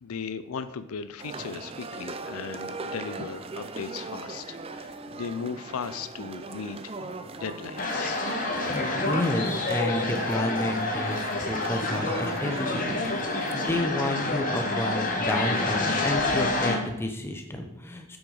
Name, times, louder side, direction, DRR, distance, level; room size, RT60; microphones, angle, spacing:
voice 1, 0.0-6.9 7.4-8.2, left 6 dB, 80° left, 12 dB, 0.5 m, -37 dB
sound 1, 1.2-13.7, right 3 dB, 25° right, 0.4 m, -40 dB
sound 2, 7.8-16.8, left 2 dB, 40° left, 1.2 m, -28 dB
voice 2, 8.7-18.2, left 1 dB, 10° left, 4 dB, 0.8 m, -30 dB
8.5 x 6.2 x 4.9 m, 0.85 s
head